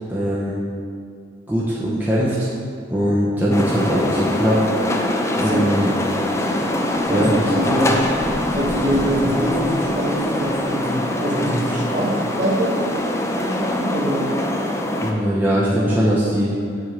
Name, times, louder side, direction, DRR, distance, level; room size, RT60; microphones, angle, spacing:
voice 1, 0.1-0.6 1.5-2.5 2.9-4.7 5.4-5.9 7.1-7.4 7.8-7.9 15.0-16.6, equal, 10° right, -8 dB, 0.9 m, -20 dB
sound 1, 3.5-15.1, left 1 dB, 15° left, 0.5 m, -23 dB
voice 2, 5.4-5.7 7.1-8.1 8.5-12.8 13.3-14.4, equal, 40° right, -6 dB, 1.8 m, -24 dB
7.7 x 3.6 x 6.5 m, 2.3 s
head